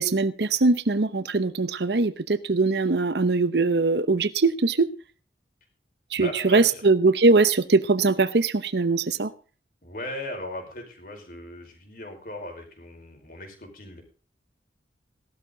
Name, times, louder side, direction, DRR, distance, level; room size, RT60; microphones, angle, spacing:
voice 1, 0.0-4.9 6.1-9.3, right 3 dB, 70° right, 14 dB, 0.9 m, -21 dB
voice 2, 6.2-6.9 9.8-14.0, left 1 dB, 50° left, 3 dB, 5.0 m, -38 dB
16.5 x 12.5 x 4.0 m, 0.37 s
head